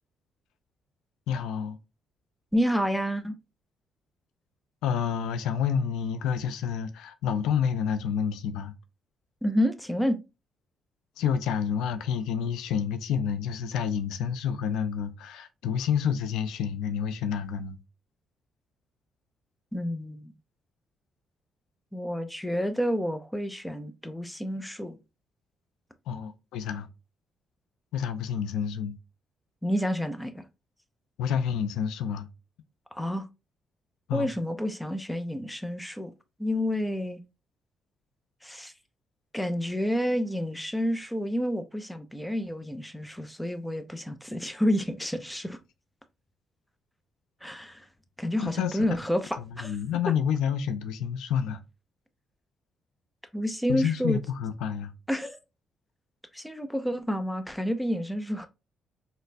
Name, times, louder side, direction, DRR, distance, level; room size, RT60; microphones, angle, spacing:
voice 1, 1.3-1.8 4.8-8.7 11.2-17.8 26.1-26.9 27.9-29.0 31.2-32.3 34.1-34.3 48.4-48.8 49.6-51.6 53.7-54.9, left 7 dB, 90° left, 0.4 m, -29 dB
voice 2, 2.5-3.4 9.4-10.2 19.7-20.3 21.9-25.0 29.6-30.4 32.9-33.3 34.1-36.1 36.4-37.2 38.4-38.7 39.3-45.6 47.4-47.9 48.2-49.8 50.1-50.2 53.3-54.2 55.1-55.4 56.3-58.5, equal, 5° left, 0.5 m, -29 dB
4.1 x 2.1 x 2.5 m
cardioid pair, 90°, 0 cm